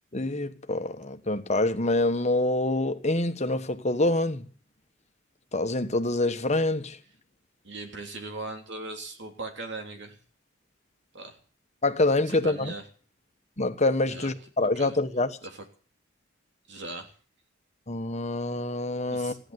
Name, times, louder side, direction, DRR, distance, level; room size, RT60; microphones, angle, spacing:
voice 1, 0.1-4.4 5.5-7.0 11.8-12.7 13.6-15.4 17.9-19.3, left 2 dB, 35° left, 1.4 m, -26 dB
voice 2, 7.6-10.2 11.1-11.4 12.2-12.9 14.1-14.3 14.7-15.0 15.4-15.6 16.7-17.1 19.1-19.4, right 2 dB, 65° right, 3.3 m, -39 dB
16.0 x 10.5 x 8.1 m
head